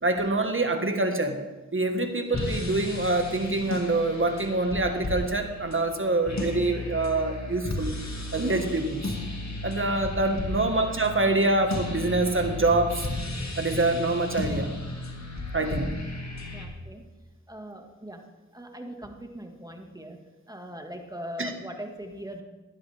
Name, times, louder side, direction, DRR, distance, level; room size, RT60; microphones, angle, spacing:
voice 1, 0.0-1.4 1.7-7.9 8.3-9.2 9.6-13.1 13.6-14.7 15.5-15.9 21.4-21.5, right 2 dB, 40° right, 5 dB, 1.6 m, -25 dB
sound 1, 2.3-16.7, left 2 dB, 55° left, 2.2 m, -34 dB
voice 2, 16.5-17.1 17.5-18.3 18.5-22.4, equal, 10° right, 3 dB, 1.9 m, -41 dB
15.5 x 11.5 x 3.5 m, 1.2 s
cardioid pair, 45°, 32 cm